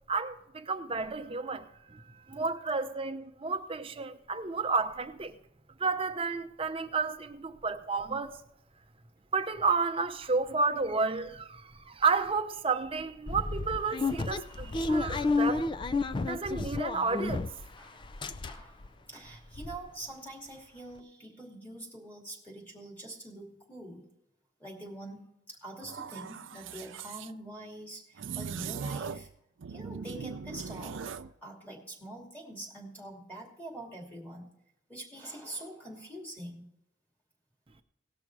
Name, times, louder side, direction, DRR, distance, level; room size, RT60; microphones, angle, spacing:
voice 1, 0.1-5.4 5.8-8.4 9.3-15.7 16.3-17.5, right 4 dB, 30° right, 0.7 m, -31 dB
sound 1, 13.3-17.7 18.0-18.9 19.3-19.4 19.5-19.8, left 3 dB, 25° left, 0.4 m, -31 dB
voice 2, 18.4-24.1 24.6-29.3 29.7-34.5 34.9-36.7, right 1 dB, 10° left, 2.7 m, -45 dB
sound 2, 25.8-27.3 28.2-29.3 29.6-31.3, right 6 dB, 80° right, 0.5 m, -39 dB
18.0 x 6.1 x 4.7 m
head